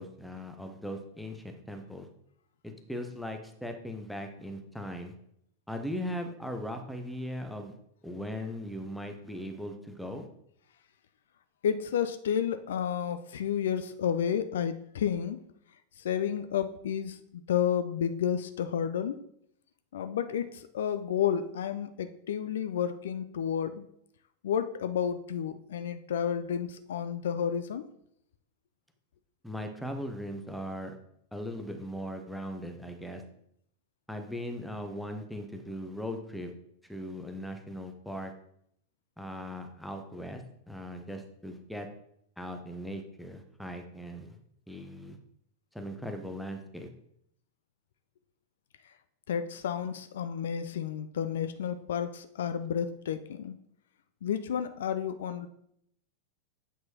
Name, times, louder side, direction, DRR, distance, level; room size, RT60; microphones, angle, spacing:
voice 1, 0.0-2.1 2.6-5.1 5.7-7.8 8.0-10.3 29.4-30.9 31.3-33.2 34.1-36.5 36.9-38.3 39.2-41.9 42.4-44.4 44.7-45.2 45.7-46.9, equal, ahead, 5 dB, 0.8 m, -39 dB
voice 2, 11.6-15.4 16.0-19.2 19.9-23.8 24.4-27.9 49.3-53.6 54.2-55.5, left 8 dB, 60° left, 11 dB, 0.3 m, -31 dB
7.8 x 4.5 x 2.8 m, 0.71 s
figure-of-eight pair, 90°, 0 cm